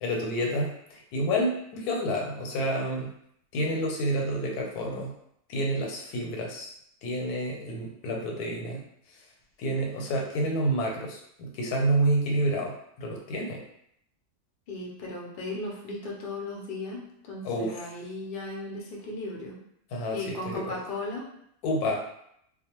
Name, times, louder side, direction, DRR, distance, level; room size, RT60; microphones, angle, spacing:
voice 1, 0.0-3.1 3.5-5.1 5.5-6.7 7.0-8.8 9.6-13.6 17.4-17.9 19.9-20.8 21.6-22.0, right 1 dB, 90° left, 0 dB, 1.2 m, -29 dB
voice 2, 14.7-19.6 20.1-21.3, left 2 dB, 55° left, -2 dB, 0.6 m, -36 dB
2.4 x 2.2 x 2.9 m, 0.73 s
omnidirectional pair, 1.6 m